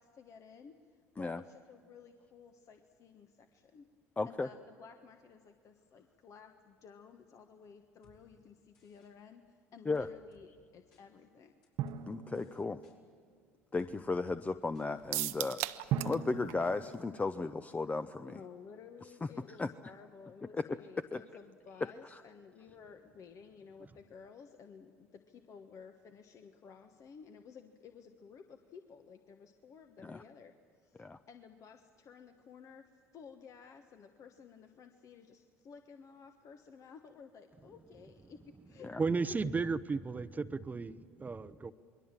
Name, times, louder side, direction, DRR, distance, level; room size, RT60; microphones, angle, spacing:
voice 1, 0.0-3.8 4.2-11.6 18.3-38.9, left 6 dB, 45° left, 6 dB, 1.3 m, -55 dB
voice 2, 4.2-4.5 9.9-10.1 12.1-12.8 13.7-15.6 16.0-18.3 19.6-19.7 20.5-20.6 21.1-21.2 30.1-30.2 31.0-31.2 38.8-39.0, left 3 dB, 20° left, 11 dB, 0.7 m, -35 dB
sound 1, 8.0-8.2 8.7-9.1 9.9-10.4 10.9-11.0 11.6-12.0 12.3-13.0 13.8-13.9 14.3-14.4 14.7-15.1 15.5-15.6, left 3 dB, 65° left, 5.8 m, -65 dB
Drum, 11.8-13.3 15.9-18.1, right 9 dB, 60° right, 1.1 m, -40 dB
sound 2, 15.1-16.2 16.5-16.6 16.9-17.0, right 17 dB, 75° right, 0.7 m, -36 dB
voice 3, 39.0-41.7, right 4 dB, 25° right, 14 dB, 0.8 m, -34 dB
28.0 x 21.5 x 7.5 m, 2.2 s
hypercardioid pair, 70°, 7 cm